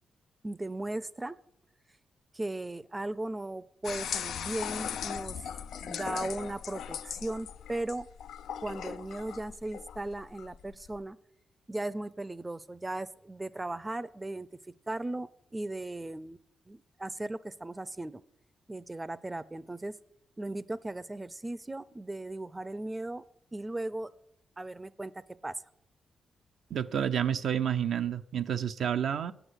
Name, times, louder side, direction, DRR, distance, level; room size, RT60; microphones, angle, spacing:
voice 1, 0.4-1.4 2.3-5.4 5.8-8.1 8.6-11.2 11.7-14.5 14.9-16.4 16.7-18.2 18.7-19.9 20.4-23.2 23.5-24.1 24.6-25.6, right 2 dB, 20° right, 0.5 m, -37 dB
sound 1, 3.8-11.0, left 8 dB, 80° left, 0.3 m, -39 dB
voice 2, 26.7-29.3, right 9 dB, 75° right, 0.5 m, -29 dB
8.8 x 8.0 x 8.1 m
cardioid pair, 65°, 0 cm